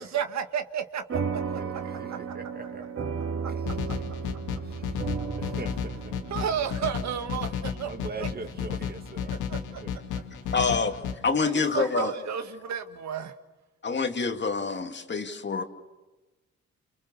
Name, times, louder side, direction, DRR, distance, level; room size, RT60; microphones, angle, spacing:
voice 1, 0.0-1.6 2.1-2.3 3.4-3.5 6.3-7.9 8.2-8.3 9.3-9.8 11.4-13.3, right 8 dB, 65° right, 1.9 m, -32 dB
sound 1, 1.1-9.9, right 5 dB, 50° right, 3.2 m, -35 dB
voice 2, 1.4-2.8 3.5-4.0 4.6-6.2 7.8-9.3 9.7-9.9 10.3-10.5 11.7-11.8, right 3 dB, 30° right, 2.1 m, -43 dB
sound 2, 3.7-11.1, left 8 dB, 90° left, 2.3 m, -33 dB
voice 3, 10.5-11.0 11.2-12.1 13.8-15.6, left 4 dB, 35° left, 2.5 m, -26 dB
29.0 x 28.5 x 7.0 m
cardioid pair, 90°, 30 cm